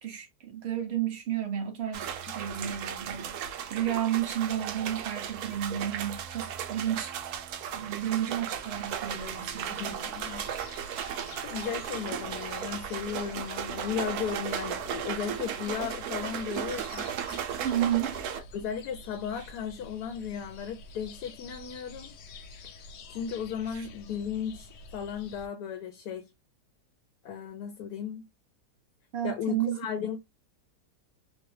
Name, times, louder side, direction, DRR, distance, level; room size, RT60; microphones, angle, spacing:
voice 1, 0.0-2.1 2.3-3.4 3.7-7.2 7.7-10.0 17.6-18.2 19.4-19.5 23.7-23.9 29.1-29.8, right 11 dB, 85° right, 0.5 m, -32 dB
sound 1, 1.9-18.4, right 9 dB, 70° right, 1.0 m, -36 dB
sound 2, 8.5-25.5, left 3 dB, 85° left, 0.6 m, -48 dB
voice 2, 9.8-10.5 11.4-17.4 18.5-22.1 23.1-26.2 27.2-28.2 29.2-30.2, left 7 dB, 70° left, 1.0 m, -35 dB
3.1 x 2.3 x 3.1 m
omnidirectional pair, 1.9 m